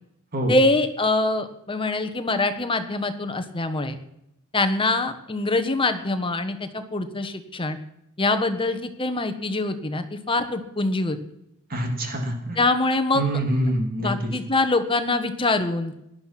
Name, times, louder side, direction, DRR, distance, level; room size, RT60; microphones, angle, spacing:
voice 1, 0.5-4.0 4.5-7.8 8.2-11.2 12.6-13.2 14.0-15.9, left 2 dB, 25° left, 8 dB, 1.3 m, -24 dB
voice 2, 11.7-12.6 13.1-14.3, right 1 dB, 40° right, 3 dB, 2.7 m, -25 dB
17.5 x 11.5 x 5.9 m, 0.81 s
head